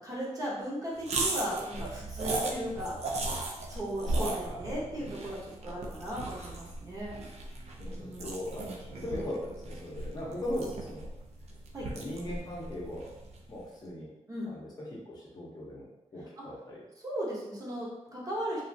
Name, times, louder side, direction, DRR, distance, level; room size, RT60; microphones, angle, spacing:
voice 1, 0.0-3.0 3.7-7.2 7.9-8.4 11.7-11.9 14.3-14.6 16.4-16.5 17.0-18.6, equal, 30° right, -5 dB, 0.7 m, -36 dB
sound 1, 1.0-13.5, right 2 dB, 65° right, 0.4 m, -37 dB
voice 2, 4.2-4.5 7.8-11.0 11.9-13.1 13.5-14.1 14.5-14.7 15.1-15.9 16.1-16.8, left 1 dB, 35° left, -5 dB, 0.7 m, -38 dB
3.1 x 2.4 x 2.6 m, 0.97 s
wide cardioid pair, 175°, 12 cm